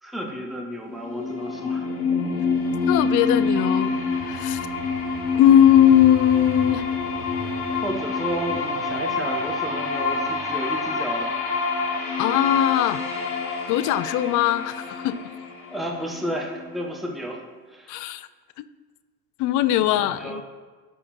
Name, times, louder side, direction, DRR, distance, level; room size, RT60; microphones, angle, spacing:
voice 1, 0.0-1.9 4.7-4.9 7.8-11.3 15.7-17.4 17.7-18.2 19.8-20.4, right 1 dB, ahead, 1 dB, 1.1 m, -32 dB
sound 1, 0.9-16.8, left 4 dB, 60° left, 1.8 m, -27 dB
voice 2, 2.9-3.9 4.2-4.6 5.4-6.9 12.2-13.0 13.7-15.2 17.9-18.3 18.6-18.7 19.4-20.4, left 11 dB, 45° left, 14 dB, 0.5 m, -19 dB
Motorcycle, 4.1-11.8, right 1 dB, 55° right, 2.2 m, -42 dB
11.5 x 4.2 x 4.3 m, 1.4 s
hypercardioid pair, 70°, 46 cm